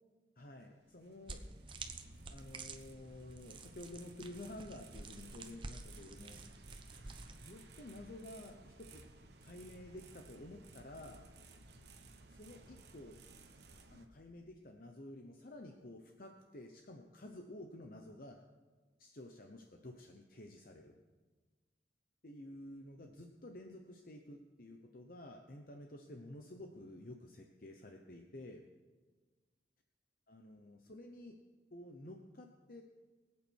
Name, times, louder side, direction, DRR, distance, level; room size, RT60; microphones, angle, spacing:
voice 1, 0.4-1.5 2.3-6.4 7.3-9.0 9.4-11.3 12.3-13.2 13.9-18.4 19.0-21.0 22.2-28.6 30.3-31.4 31.7-32.8, left 1 dB, 50° left, 3 dB, 0.9 m, -51 dB
sound 1, 0.6-14.1, right 3 dB, 65° right, 1.2 m, -58 dB
sound 2, 1.3-7.5, right 3 dB, 30° right, 0.9 m, -50 dB
23.0 x 8.5 x 4.6 m, 1.3 s
head